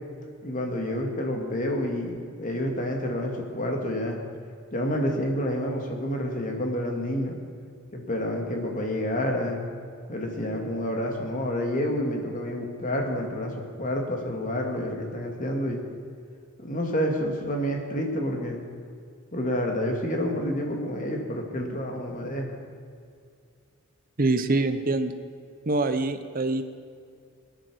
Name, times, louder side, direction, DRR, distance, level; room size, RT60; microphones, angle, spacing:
voice 1, 0.4-4.2 4.7-7.4 7.9-9.7 10.1-15.8 16.6-18.6 19.3-22.6, equal, 40° left, 1 dB, 2.2 m, -29 dB
voice 2, 24.2-25.1 25.7-26.6, right 2 dB, 45° right, 10 dB, 0.9 m, -24 dB
19.5 x 10.5 x 6.4 m, 2.3 s
head